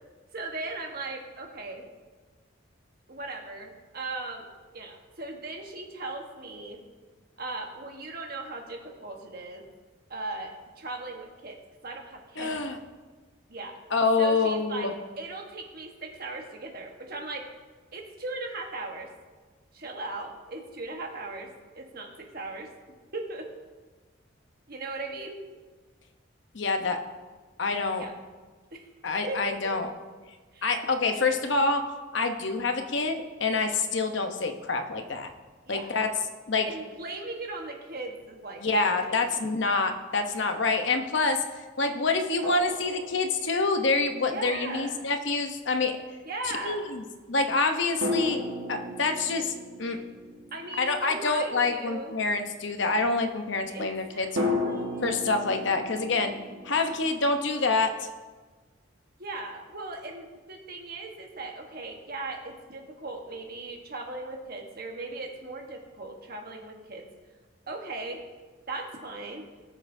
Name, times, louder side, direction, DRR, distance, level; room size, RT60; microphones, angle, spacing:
voice 1, 0.3-1.8 3.1-4.5 4.7-6.8 7.4-9.7 10.1-11.6 11.8-12.6 13.5-13.8 14.2-17.5 17.9-19.1 19.7-22.7 23.1-23.5 24.7-25.4 28.0-28.1 28.7-28.8 29.3-29.8 30.5-30.7 35.6-35.9 36.6-39.4 44.2-45.0 46.2-46.8 50.5-52.1 53.7-55.1 59.2-67.1 67.7-68.2 68.7-69.4, right 2 dB, 50° right, 2 dB, 1.2 m, -38 dB
voice 2, 12.4-12.8 13.9-14.9 26.5-27.0 27.6-28.0 29.0-29.9 30.6-31.8 32.1-35.3 35.7-36.1 36.5-36.7 38.6-41.4 41.8-46.0 46.6-47.0 47.3-48.4 48.7-49.5 49.8-50.0 50.8-54.3 55.0-56.4 56.6-58.1, left 3 dB, 60° left, 6 dB, 0.8 m, -26 dB
sound 1, 42.4-43.9 48.0-51.6 54.4-57.1, left 2 dB, 75° right, 1.5 m, -34 dB
18.0 x 6.4 x 2.7 m, 1.3 s
head